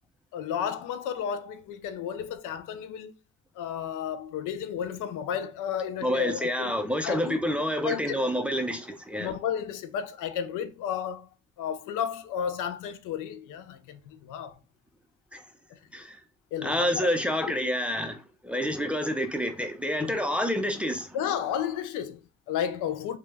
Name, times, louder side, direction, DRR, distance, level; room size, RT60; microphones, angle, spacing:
voice 1, 0.3-3.1 3.6-7.4 7.8-8.2 9.1-11.3 11.6-14.6 15.7-15.8 16.5-17.1 20.0-20.2 21.1-23.2, left 8 dB, 85° left, 0.5 m, -33 dB
voice 2, 6.0-9.3 15.3-15.4 15.9-16.2 16.6-21.2, equal, 5° right, 0.4 m, -28 dB
2.2 x 2.0 x 3.2 m
cardioid pair, 90°, 30 cm